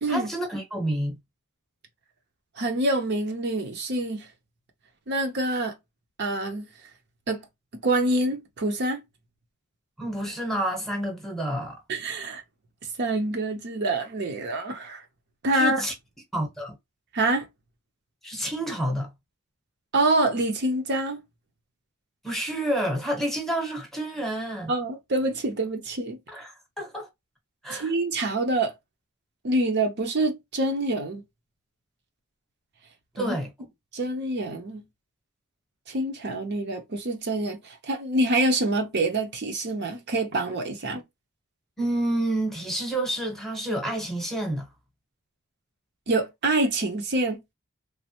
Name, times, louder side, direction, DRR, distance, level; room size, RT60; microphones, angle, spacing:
voice 1, 0.1-1.1 10.0-11.8 15.5-15.9 16.3-16.8 18.2-19.1 22.2-24.7 26.3-27.1 27.6-27.9 33.2-33.5 41.8-44.7, right 1 dB, ahead, 0.9 m, -29 dB
voice 2, 2.6-4.3 5.1-5.7 6.2-6.7 7.3-7.4 7.8-9.0 11.9-12.4 13.0-15.0 15.4-15.8 17.1-17.5 19.9-21.2 24.7-26.2 27.7-28.7 29.4-31.2 33.2-33.3 33.9-34.8 35.9-41.0 46.1-47.4, right 2 dB, 55° right, 0.6 m, -26 dB
3.1 x 2.0 x 2.8 m
head